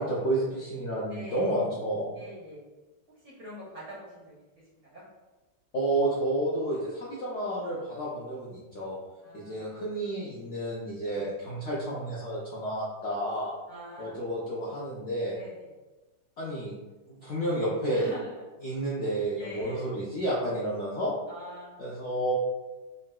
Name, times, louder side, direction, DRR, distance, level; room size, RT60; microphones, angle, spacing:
voice 1, 0.0-2.1 5.7-9.0 9.3-13.5 14.0-15.3 16.4-16.7 17.1-18.1 18.6-21.1 21.8-22.3, right 1 dB, 70° left, -7 dB, 0.7 m, -30 dB
voice 2, 1.1-1.6 2.1-2.7 3.2-4.4 4.7-5.0 9.2-9.8 11.1-11.3 13.7-14.2 15.3-15.7 17.9-18.3 19.4-19.9 21.3-21.7, equal, 60° right, -7 dB, 0.8 m, -44 dB
3.7 x 2.3 x 2.2 m, 1.2 s
omnidirectional pair, 1.8 m